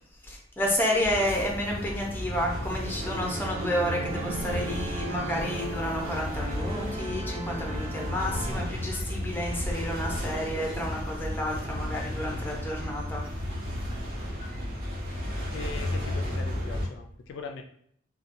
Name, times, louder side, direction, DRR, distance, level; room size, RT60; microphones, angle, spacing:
voice 1, 0.2-13.2 15.1-15.2, left 1 dB, 10° left, -1 dB, 0.6 m, -30 dB
sound 1, 1.0-16.9, left 1 dB, 55° right, 1.3 m, -34 dB
sound 2, 2.9-8.6, right 2 dB, 35° right, 0.3 m, -37 dB
voice 2, 15.3-17.6, left 4 dB, 70° left, 4 dB, 0.3 m, -40 dB
2.8 x 2.2 x 2.5 m, 0.67 s
head